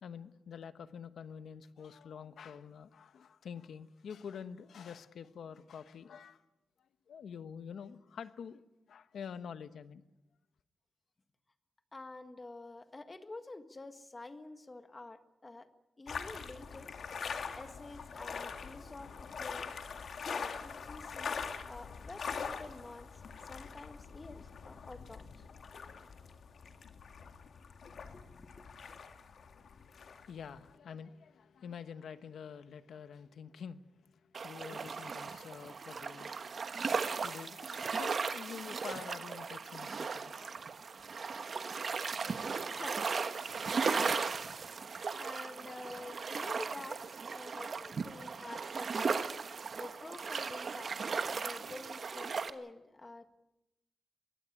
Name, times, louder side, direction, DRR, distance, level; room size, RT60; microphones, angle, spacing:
voice 1, 0.0-6.4 6.8-8.6 8.9-10.0 29.5-40.6 41.3-41.6, left 7 dB, 85° left, 1.1 m, -48 dB
voice 2, 11.9-15.7 16.0-17.0 17.6-19.7 20.3-23.1 23.5-25.2 28.1-28.6 42.6-44.7 45.2-49.2 49.8-50.9 51.2-53.4, left 2 dB, 25° left, 1.6 m, -49 dB
sound 1, 16.1-30.7, left 5 dB, 65° left, 2.1 m, -43 dB
sound 2, 34.3-52.5, right 5 dB, 50° right, 1.2 m, -37 dB
23.0 x 16.5 x 9.8 m
wide cardioid pair, 140°, 0 cm